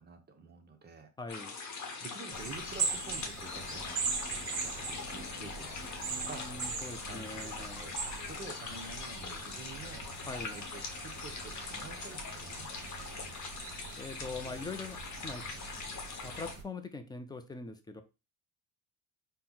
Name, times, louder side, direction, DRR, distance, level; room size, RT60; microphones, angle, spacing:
voice 1, 0.0-1.1 1.8-6.5 7.1-10.1 10.4-13.1, right 4 dB, 25° right, 5 dB, 0.7 m, -49 dB
voice 2, 1.2-1.6 6.1-7.9 10.3-10.6 14.0-15.4 16.2-18.0, left 3 dB, 10° left, 8 dB, 0.3 m, -42 dB
sound 1, 1.3-16.5, left 4 dB, 40° left, 0.9 m, -42 dB
sound 2, 2.3-16.6, right 5 dB, 45° right, 1.1 m, -41 dB
4.3 x 2.1 x 3.8 m, 0.29 s
cardioid pair, 120°, 42 cm